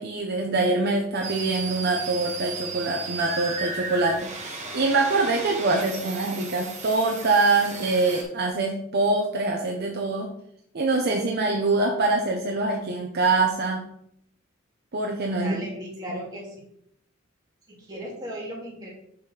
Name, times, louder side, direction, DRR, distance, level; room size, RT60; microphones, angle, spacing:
voice 1, 0.0-10.3 10.7-13.8 14.9-15.6 16.1-16.2, right 3 dB, 55° right, 1 dB, 0.8 m, -24 dB
sound 1, 1.2-8.2, right 4 dB, 35° right, 1.3 m, -35 dB
voice 2, 15.4-16.6 17.7-18.9, equal, 20° right, -4 dB, 2.4 m, -36 dB
6.2 x 5.9 x 3.3 m, 0.72 s
head